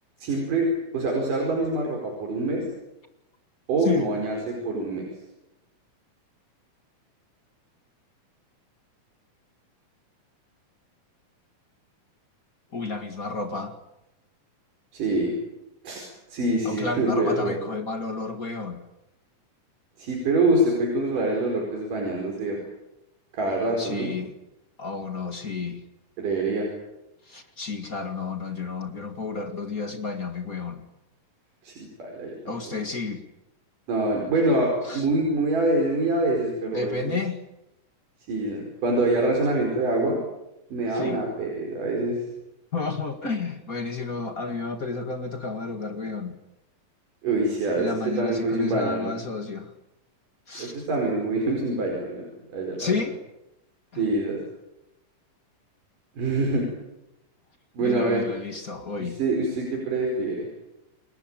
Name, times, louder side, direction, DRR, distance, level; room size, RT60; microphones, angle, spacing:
voice 1, 0.2-2.7 3.7-5.1 14.9-15.3 15.8-16.0 16.3-17.6 20.0-22.6 23.3-24.1 26.2-26.7 31.6-32.3 33.9-37.1 38.3-40.2 40.7-42.2 47.2-49.1 50.6-52.9 54.0-54.4 56.2-56.7 57.7-58.2 59.2-60.5, right 2 dB, 75° right, 0 dB, 6.5 m, -25 dB
voice 2, 3.8-4.1 12.7-13.8 16.6-18.8 23.8-24.3 24.8-25.8 27.3-30.8 32.5-33.2 34.8-35.1 36.7-37.4 40.9-41.2 42.7-46.4 47.7-49.7 50.5-50.9 52.8-53.2 53.9-54.0 57.8-59.2, left 4 dB, 30° left, 7 dB, 1.9 m, -31 dB
29.5 x 21.0 x 9.0 m, 0.91 s
omnidirectional pair, 3.8 m